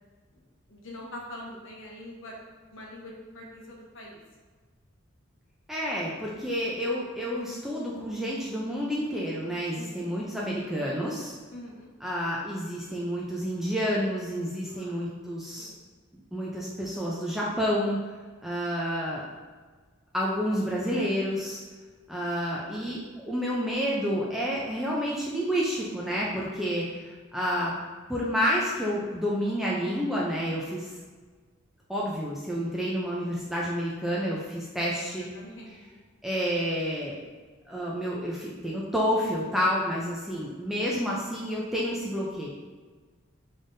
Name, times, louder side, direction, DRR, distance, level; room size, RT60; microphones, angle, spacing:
voice 1, 0.7-2.4 2.7-4.2 9.5-10.0 11.5-11.9 14.7-15.0 15.6-15.8 34.9-36.0, left 1 dB, 65° left, -2 dB, 1.0 m, -44 dB
voice 2, 5.7-11.4 12.0-15.7 16.3-18.0 18.4-19.2 20.1-21.6 22.1-27.7 28.1-30.9 31.9-35.3 36.2-37.2 37.7-42.5, equal, ahead, -5 dB, 0.5 m, -29 dB
5.5 x 3.5 x 2.6 m, 1.4 s
head